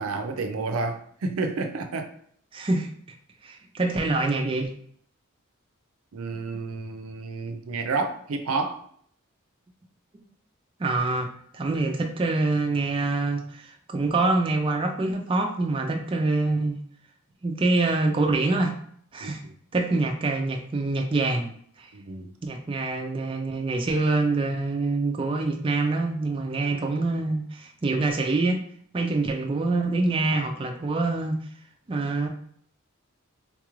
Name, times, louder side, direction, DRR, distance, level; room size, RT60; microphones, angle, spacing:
voice 1, 0.0-2.1 6.1-8.8 19.2-19.3 21.9-22.3, right 3 dB, 80° right, 6 dB, 0.5 m, -30 dB
voice 2, 2.5-2.9 3.4-4.7 10.8-11.3 11.5-16.8 17.4-18.7 19.1-19.4 19.7-21.5 21.8-21.9 22.4-28.6 28.9-31.4 31.9-32.3, right 3 dB, 25° right, 3 dB, 0.3 m, -25 dB
3.8 x 2.4 x 3.0 m, 0.62 s
head